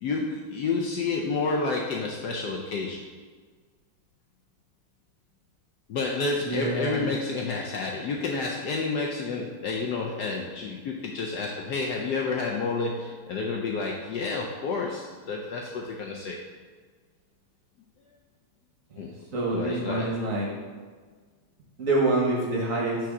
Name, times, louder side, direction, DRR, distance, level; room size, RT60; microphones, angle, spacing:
voice 1, 0.0-3.1 5.9-16.4 19.0-19.1 19.5-20.1, left 4 dB, 70° left, 0 dB, 1.0 m, -30 dB
voice 2, 6.4-7.1 18.9-19.0 19.3-20.5 21.8-23.0, right 2 dB, 50° right, -3 dB, 1.1 m, -26 dB
6.0 x 3.6 x 5.9 m, 1.5 s
omnidirectional pair, 2.2 m